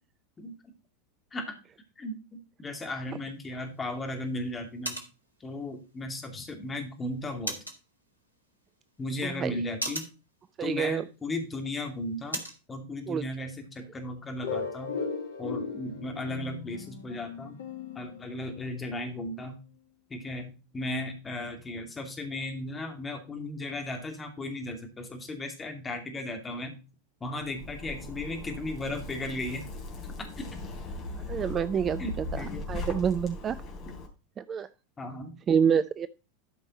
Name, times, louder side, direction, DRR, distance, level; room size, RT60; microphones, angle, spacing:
voice 1, 2.0-5.0 5.4-7.6 9.0-10.1 10.6-12.4 12.7-14.9 15.4-17.6 17.9-19.6 20.1-26.8 27.2-29.6 30.2-30.3 32.0-32.7 33.9-34.0 35.0-35.3, left 1 dB, 15° left, 4 dB, 2.6 m, -36 dB
sound 1, 3.2-12.7, right 1 dB, 90° left, 1.8 m, -43 dB
voice 2, 9.2-9.5 10.6-11.0 13.1-13.2 31.3-33.6 34.4-34.7 35.5-36.1, right 7 dB, 25° right, 14 dB, 0.4 m, -27 dB
sound 2, 14.4-19.0, left 5 dB, 65° left, 1.6 m, -37 dB
Zipper (clothing), 27.4-34.1, left 2 dB, 35° left, 3.2 m, -39 dB
13.0 x 5.4 x 4.2 m, 0.31 s
figure-of-eight pair, 85°, 0 cm